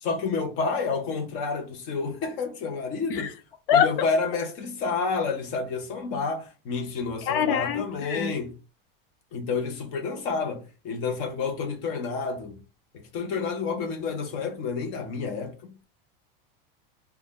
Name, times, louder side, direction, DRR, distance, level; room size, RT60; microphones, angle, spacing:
voice 1, 0.0-3.3 3.7-8.6 9.3-12.6 12.9-15.7, left 4 dB, 25° left, 0.4 m, -29 dB
voice 2, 7.3-7.8 8.1-8.3, left 8 dB, 65° left, 0.6 m, -22 dB
2.4 x 2.1 x 3.3 m
supercardioid pair, 180°, 30 cm